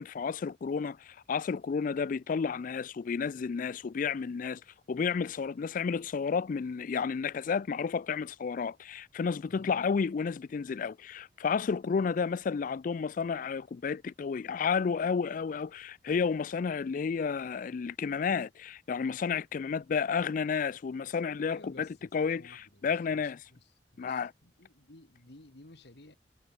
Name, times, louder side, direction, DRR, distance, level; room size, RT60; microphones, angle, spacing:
voice 1, 0.0-4.6 4.9-23.5 24.0-24.3, left 5 dB, 50° left, 0.4 m, -31 dB
voice 2, 9.5-9.8 21.5-26.2, left 2 dB, 70° left, 2.2 m, -55 dB
head